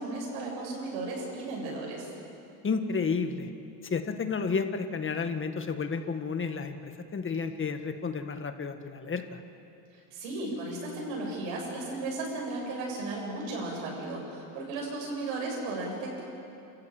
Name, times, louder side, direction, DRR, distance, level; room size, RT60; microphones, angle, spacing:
voice 1, 0.0-2.1 9.9-16.2, right 2 dB, 85° right, -2 dB, 7.4 m, -35 dB
voice 2, 2.6-3.5 3.8-9.4, left 5 dB, 25° left, 8 dB, 1.6 m, -31 dB
29.0 x 15.0 x 8.9 m, 2.8 s
cardioid pair, 120°, 47 cm